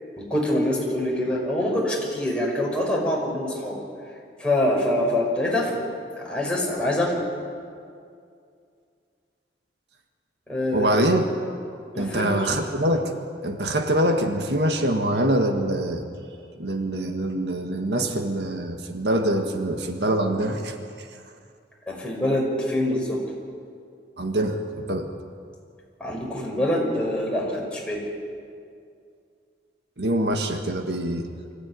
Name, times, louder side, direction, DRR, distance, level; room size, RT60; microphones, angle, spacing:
voice 1, 0.2-3.8 4.4-5.8 6.2-7.2 10.5-10.9 11.9-12.5 21.9-23.2 26.0-28.0, left 1 dB, 5° left, -3 dB, 5.3 m, -25 dB
voice 2, 10.7-11.2 12.0-13.1 13.4-16.0 16.6-20.7 24.2-25.1 30.0-31.3, right 1 dB, 70° right, 4 dB, 1.6 m, -24 dB
24.5 x 15.5 x 9.6 m, 2.3 s
head